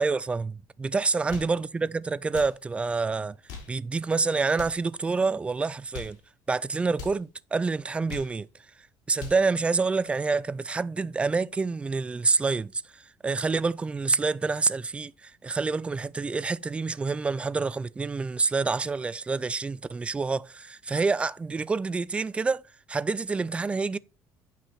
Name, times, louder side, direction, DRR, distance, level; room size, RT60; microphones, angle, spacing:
voice 1, 0.0-3.4 3.7-6.2 6.5-8.5 9.1-12.8 13.2-24.0, right 4 dB, 15° right, 0.3 m, -27 dB
sound 1, 1.1-1.6 2.2-2.6 3.3-3.8 4.5-4.9 5.7-6.2 6.9-7.2 7.9-8.4 9.0-9.5, left 6 dB, 75° left, 3.7 m, -42 dB
9.2 x 5.8 x 4.2 m
cardioid pair, 140°, 7 cm